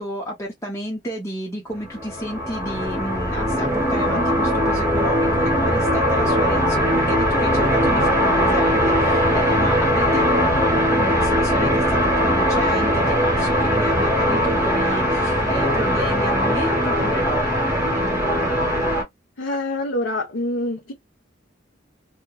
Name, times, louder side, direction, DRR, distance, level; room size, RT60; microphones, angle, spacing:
voice 1, 0.0-17.4, equal, 15° left, 0.7 m, -31 dB
sound 1, 1.8-19.0, equal, 15° right, 1.2 m, -20 dB
voice 2, 19.4-20.9, left 1 dB, 85° left, 0.9 m, -25 dB
2.8 x 2.2 x 2.3 m
head